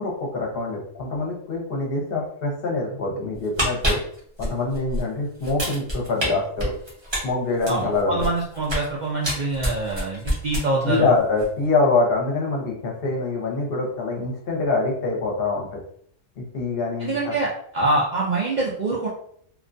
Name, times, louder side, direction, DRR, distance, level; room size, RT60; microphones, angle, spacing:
voice 1, 0.0-4.0 4.4-6.7 7.2-8.2 10.8-15.8 16.4-17.3, left 3 dB, 55° left, 0 dB, 0.8 m, -24 dB
sound 1, 3.3-5.0 5.4-6.3 6.6-8.9 9.2-11.0 11.3-11.5, equal, 25° right, 0.8 m, -27 dB
voice 2, 7.7-11.1 17.0-19.1, right 2 dB, 70° right, -5 dB, 0.4 m, -25 dB
2.4 x 2.2 x 2.5 m, 0.63 s
omnidirectional pair, 1.3 m